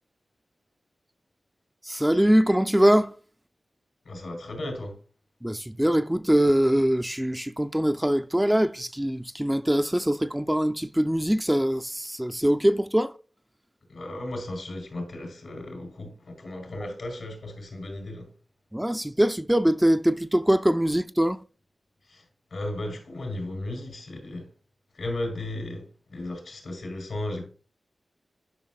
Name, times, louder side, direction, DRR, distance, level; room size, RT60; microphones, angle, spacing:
voice 1, 1.8-3.2 5.4-13.2 18.7-21.4, equal, 10° right, 0.4 m, -23 dB
voice 2, 4.0-5.0 13.9-18.3 22.1-22.2 22.5-24.5 24.9-27.5, left 1 dB, 85° left, 3.6 m, -35 dB
11.0 x 5.6 x 2.3 m
cardioid pair, 60°, 0 cm